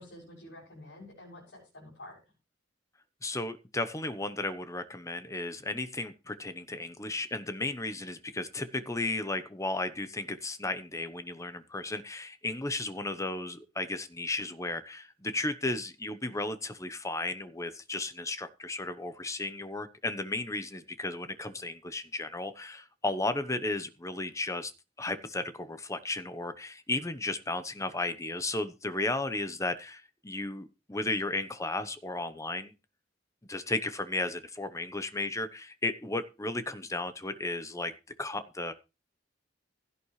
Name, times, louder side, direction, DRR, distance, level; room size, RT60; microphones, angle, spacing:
voice 1, 0.0-2.2, left 1 dB, 70° left, -6 dB, 7.3 m, -49 dB
voice 2, 3.2-24.7 25.0-32.7 33.5-37.9 38.2-38.7, left 2 dB, 15° left, 11 dB, 0.9 m, -34 dB
16.0 x 10.0 x 3.2 m, 0.29 s
head